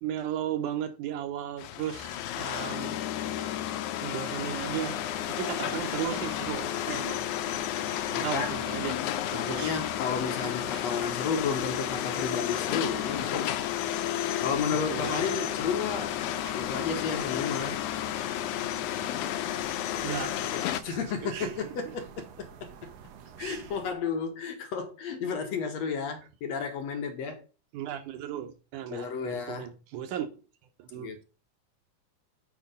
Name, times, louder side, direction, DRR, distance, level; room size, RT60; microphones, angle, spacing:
voice 1, 0.0-3.0 4.0-7.3 8.1-9.0 9.3-9.7 10.4-10.5 14.9-15.3 20.0-21.5 21.9-22.0 27.7-30.4 30.8-31.1, right 10 dB, 90° right, 2.4 m, -36 dB
sound 1, 1.6-20.8, left 12 dB, 85° left, 2.0 m, -32 dB
sound 2, 4.4-23.9, right 8 dB, 70° right, 1.7 m, -48 dB
voice 2, 8.1-8.5 9.3-13.5 14.4-16.2 16.5-17.8 20.8-22.9 23.4-27.4 28.9-29.7 30.9-31.2, left 5 dB, 65° left, 2.1 m, -32 dB
7.1 x 4.8 x 5.2 m
omnidirectional pair, 3.4 m